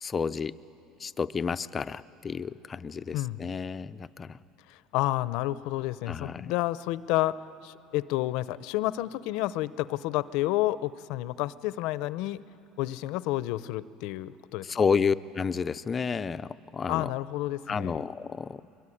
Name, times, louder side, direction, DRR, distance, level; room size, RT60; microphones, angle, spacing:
voice 1, 0.0-0.5 1.0-4.4 6.1-6.5 14.6-17.1 17.7-18.6, left 6 dB, 25° left, 13 dB, 0.5 m, -30 dB
voice 2, 4.7-12.4 12.8-14.7 16.9-18.0, left 16 dB, 70° left, 16 dB, 0.6 m, -30 dB
23.0 x 22.0 x 10.0 m, 2.7 s
cardioid pair, 130°, 0 cm